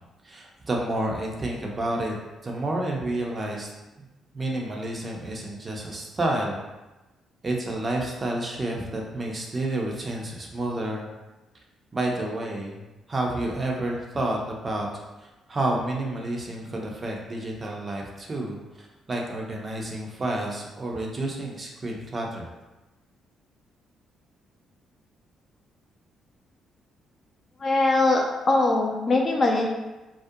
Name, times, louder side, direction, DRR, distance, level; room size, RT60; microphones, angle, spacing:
voice 1, 0.2-2.1 2.4-3.7 4.3-6.6 7.4-11.1 11.9-12.8 13.1-14.9 15.5-22.5, right 1 dB, 30° right, -1 dB, 0.5 m, -30 dB
voice 2, 27.6-29.7, left 2 dB, 40° left, 1 dB, 0.4 m, -21 dB
2.4 x 2.1 x 2.6 m, 1.1 s
cardioid pair, 90°, 0 cm